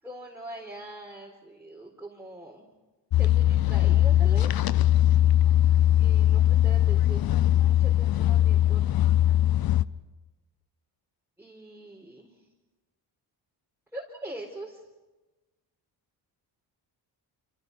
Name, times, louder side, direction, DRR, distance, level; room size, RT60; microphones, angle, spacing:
voice 1, 0.0-2.6 3.2-4.5 6.0-7.3 7.6-9.0 11.4-12.5 13.9-14.8, right 1 dB, 5° right, -2 dB, 4.3 m, -42 dB
sound 1, 3.1-9.8, left 12 dB, 50° left, 0.8 m, -21 dB
29.0 x 29.0 x 5.5 m, 1.1 s
cardioid pair, 125°, 45 cm